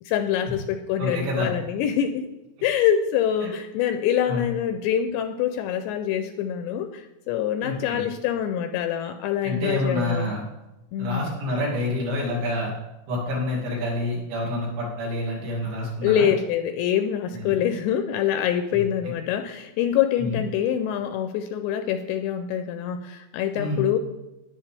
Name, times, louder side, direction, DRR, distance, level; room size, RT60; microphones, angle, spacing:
voice 1, 0.0-2.3 2.6-10.3 10.9-11.2 16.0-24.0, left 9 dB, 80° left, 7 dB, 2.7 m, -25 dB
voice 2, 1.0-1.5 3.4-3.5 4.2-4.4 7.6-8.1 9.4-10.5 11.0-12.7 13.1-16.3 17.3-17.6 18.7-18.8 20.2-20.4 23.6-23.9, left 1 dB, 70° right, -4 dB, 5.1 m, -28 dB
13.0 x 10.5 x 3.5 m, 0.97 s
omnidirectional pair, 5.5 m